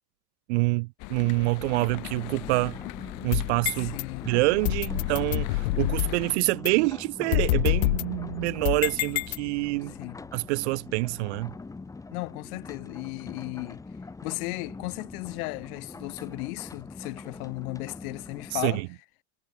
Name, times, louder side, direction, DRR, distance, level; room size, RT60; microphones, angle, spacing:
voice 1, 0.5-2.8 3.2-4.0 4.3-9.9 10.3-11.5 18.5-18.9, right 25 dB, 45° right, 0.4 m, -26 dB
sound 1, 1.0-6.4, left 27 dB, 40° left, 1.4 m, -40 dB
sound 2, 1.9-18.7, left 3 dB, 5° left, 1.5 m, -43 dB
sound 3, 3.1-4.0 4.6-6.2 6.6-6.7 7.3-9.8, left 21 dB, 85° left, 1.0 m, -27 dB
voice 2, 3.8-4.3 9.9-10.2 12.1-13.8 14.2-18.8, left 28 dB, 55° left, 3.4 m, -35 dB
supercardioid pair, 170°, 50 cm